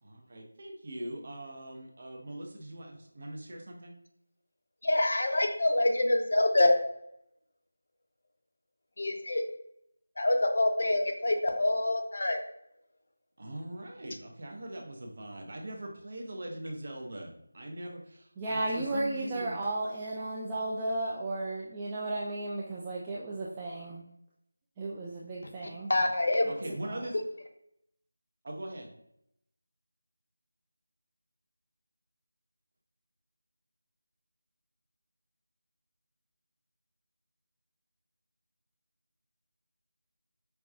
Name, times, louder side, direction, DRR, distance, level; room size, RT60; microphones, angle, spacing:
voice 1, 0.0-3.9 13.4-19.6 26.5-27.1 28.4-28.9, right 1 dB, 45° right, 1 dB, 0.8 m, -41 dB
voice 2, 4.8-6.8 9.0-9.4 10.2-12.4 25.9-26.5, left 1 dB, 60° left, 4 dB, 0.6 m, -26 dB
voice 3, 18.4-24.0 24.8-25.9, right 2 dB, 15° right, -6 dB, 0.3 m, -34 dB
5.5 x 2.3 x 2.4 m, 0.76 s
figure-of-eight pair, 170°, 0 cm